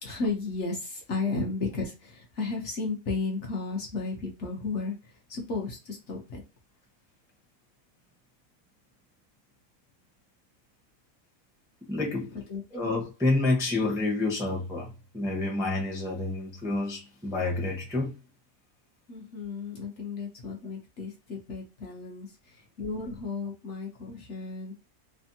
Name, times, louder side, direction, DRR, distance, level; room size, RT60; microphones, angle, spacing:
voice 1, 0.0-4.9 5.3-6.4 12.5-12.9 19.1-22.3 22.8-24.9, left 3 dB, 55° left, 1.0 m, -34 dB
voice 2, 11.9-12.3 12.7-18.2, left 2 dB, 5° right, 0.6 m, -29 dB
3.3 x 2.1 x 2.7 m
omnidirectional pair, 1.6 m